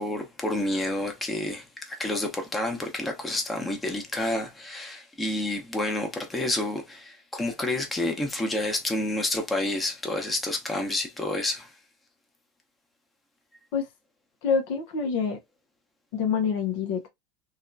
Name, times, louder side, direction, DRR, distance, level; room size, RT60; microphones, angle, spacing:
voice 1, 0.0-11.7, left 1 dB, 10° left, 0.9 m, -29 dB
voice 2, 14.4-15.4 16.1-17.1, left 6 dB, 65° left, 0.7 m, -26 dB
2.7 x 2.3 x 2.5 m
hypercardioid pair, 100°, 0 cm